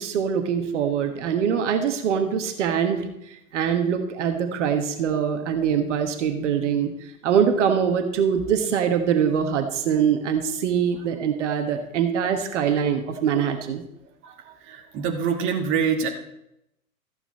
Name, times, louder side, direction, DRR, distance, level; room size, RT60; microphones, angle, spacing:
voice 1, 0.0-13.8, right 7 dB, 55° right, 6 dB, 1.5 m, -23 dB
voice 2, 14.2-16.1, right 6 dB, 30° right, 3 dB, 1.5 m, -26 dB
14.0 x 8.8 x 4.3 m, 0.82 s
figure-of-eight pair, 110°, 43 cm